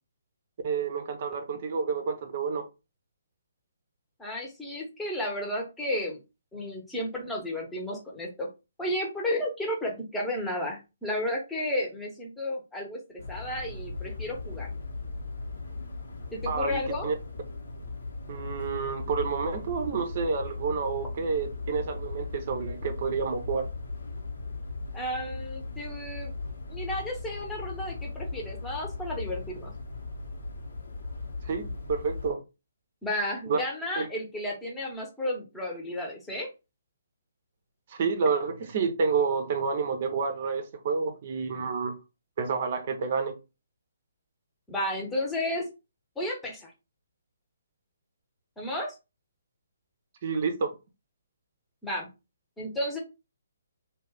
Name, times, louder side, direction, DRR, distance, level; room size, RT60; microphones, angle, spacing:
voice 1, 0.6-2.7 16.5-17.1 18.3-23.7 31.4-32.4 33.5-33.6 34.0-34.1 37.9-41.9 42.4-43.4 50.2-50.7, right 5 dB, 45° right, 0.6 m, -29 dB
voice 2, 4.2-6.2 6.5-8.5 8.8-14.7 16.3-17.1 24.9-26.3 26.7-29.7 33.0-36.5 44.7-45.6 46.2-46.7 48.6-48.9 51.8-52.1 52.6-53.0, left 1 dB, 5° left, 0.9 m, -32 dB
sound 1, 13.2-32.3, left 3 dB, 70° left, 1.0 m, -38 dB
2.5 x 2.3 x 3.3 m
figure-of-eight pair, 140°, 0 cm